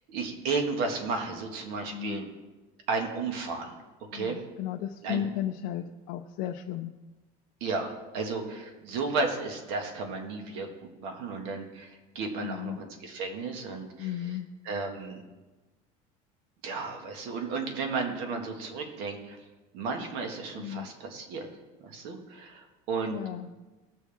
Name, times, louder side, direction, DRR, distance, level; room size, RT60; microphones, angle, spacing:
voice 1, 0.1-2.3 2.9-3.7 4.1-4.4 5.0-5.2 7.6-10.7 11.0-14.4 14.6-15.2 16.6-19.4 19.7-21.5 21.8-23.2, right 4 dB, 70° right, 3 dB, 1.8 m, -33 dB
voice 2, 1.9-2.2 4.1-6.9 12.4-12.8 14.0-14.5 20.6-20.9 23.1-23.5, left 11 dB, 60° left, 4 dB, 0.5 m, -34 dB
17.5 x 6.3 x 3.5 m, 1.2 s
cardioid pair, 165°, 17 cm